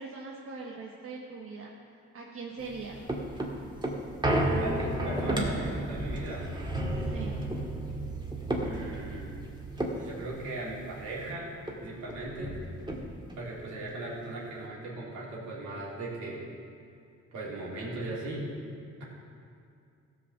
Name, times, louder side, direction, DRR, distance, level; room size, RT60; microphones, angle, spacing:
voice 1, 0.0-1.7 2.1-3.1 6.9-7.5, right 4 dB, 50° right, -2 dB, 1.4 m, -41 dB
sound 1, 2.6-11.3 11.7-11.8 12.0-13.4 13.9-14.0, right 1 dB, 15° right, 1.9 m, -32 dB
voice 2, 4.6-6.5 8.6-9.4 9.9-11.5 11.8-12.5 13.3-16.4 17.3-18.5, right 2 dB, 75° right, -5 dB, 3.4 m, -38 dB
16.0 x 5.4 x 7.1 m, 2.4 s
cardioid pair, 90°, 30 cm